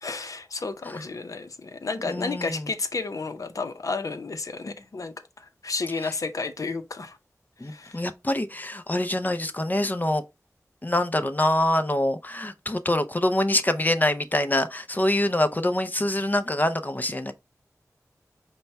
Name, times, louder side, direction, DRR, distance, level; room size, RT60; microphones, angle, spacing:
voice 1, 0.0-7.2 7.6-8.0, left 4 dB, 70° left, 0.7 m, -32 dB
voice 2, 2.0-2.6 7.6-10.2 10.8-17.3, left 1 dB, 30° left, 0.5 m, -25 dB
5.2 x 2.2 x 4.5 m
cardioid pair, 45°, 6 cm